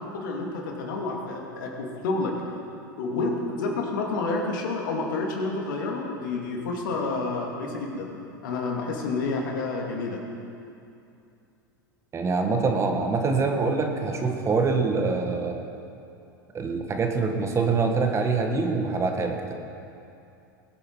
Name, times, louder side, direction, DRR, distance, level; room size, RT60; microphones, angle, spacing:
voice 1, 0.0-2.3 3.0-8.1 8.4-10.2, left 3 dB, 70° left, 0 dB, 2.5 m, -29 dB
voice 2, 12.1-15.6 16.5-19.5, right 4 dB, 25° right, 4 dB, 1.6 m, -25 dB
21.0 x 8.7 x 4.7 m, 2.6 s
hypercardioid pair, 90°, 11 cm